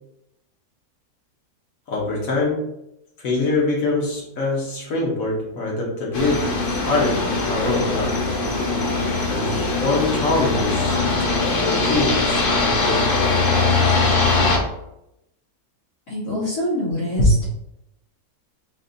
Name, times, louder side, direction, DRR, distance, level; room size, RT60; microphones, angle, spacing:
voice 1, 1.9-2.7 3.2-8.2 9.2-13.0 17.2-17.3, left 2 dB, 65° left, -3 dB, 1.6 m, -24 dB
sound 1, 6.1-14.6, left 3 dB, 45° left, 0.8 m, -21 dB
voice 2, 16.1-17.4, left 1 dB, 80° left, -11 dB, 2.2 m, -25 dB
4.0 x 2.7 x 3.9 m, 0.84 s
omnidirectional pair, 1.6 m